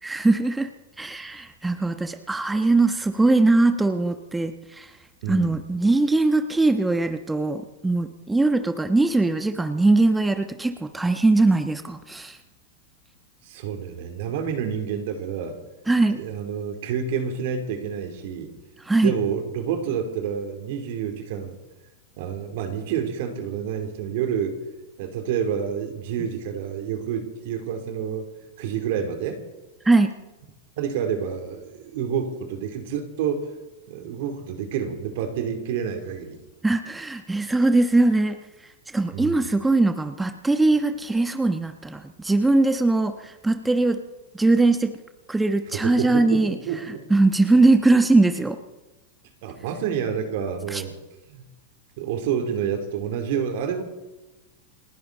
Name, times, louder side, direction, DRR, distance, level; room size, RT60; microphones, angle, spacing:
voice 1, 0.0-0.7 1.0-4.9 5.3-12.4 15.9-16.2 18.8-19.1 29.8-30.1 36.6-38.4 38.9-44.0 44.3-45.0 45.3-46.6 47.1-48.6 50.7-50.8, right 2 dB, 10° right, 7 dB, 1.1 m, -21 dB
voice 2, 5.2-5.6 13.4-15.6 16.1-18.5 19.0-21.6 22.2-24.6 25.0-28.3 28.6-29.4 30.8-33.5 33.9-36.4 39.1-39.4 45.7-47.0 49.4-50.9 51.3-51.5 52.0-53.8, right 7 dB, 60° right, 6 dB, 3.1 m, -28 dB
30.0 x 10.5 x 4.1 m, 1.1 s
hypercardioid pair, 95°, 0 cm